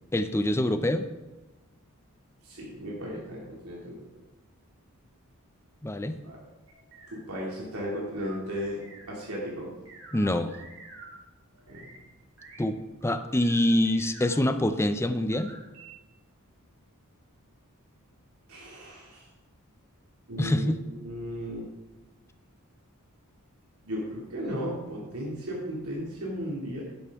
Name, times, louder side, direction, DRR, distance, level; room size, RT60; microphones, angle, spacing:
voice 1, 0.1-1.1 5.8-6.2 10.1-10.5 12.6-12.8 13.0-15.5 20.4-20.8, left 1 dB, 10° left, 9 dB, 0.5 m, -25 dB
voice 2, 2.4-3.9 6.2-6.4 7.1-8.8 9.1-9.7 11.7-11.9 18.5-19.2 20.3-21.7 23.8-26.8, equal, 80° right, -5 dB, 2.5 m, -35 dB
sound 1, 6.7-11.1 11.5-12.0 12.4-12.6 13.0-14.7 15.1-16.0, right 3 dB, 60° right, 3.2 m, -50 dB
11.5 x 11.0 x 3.6 m, 1.1 s
head